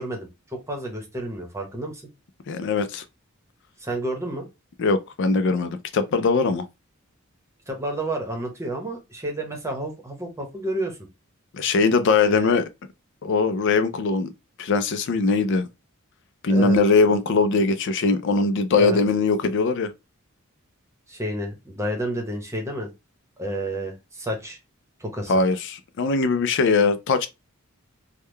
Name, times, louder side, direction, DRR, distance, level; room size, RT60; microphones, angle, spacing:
voice 1, 0.0-2.0 3.8-4.4 7.7-11.0 12.3-12.6 16.5-16.8 18.8-19.0 21.1-22.9 23.4-24.6 25.0-25.4, right 1 dB, 15° right, 0.9 m, -30 dB
voice 2, 2.5-3.0 4.8-6.7 11.5-12.7 13.2-14.3 14.6-15.7 16.4-19.9 25.3-27.3, left 4 dB, 55° left, 0.4 m, -21 dB
3.6 x 2.2 x 3.1 m
head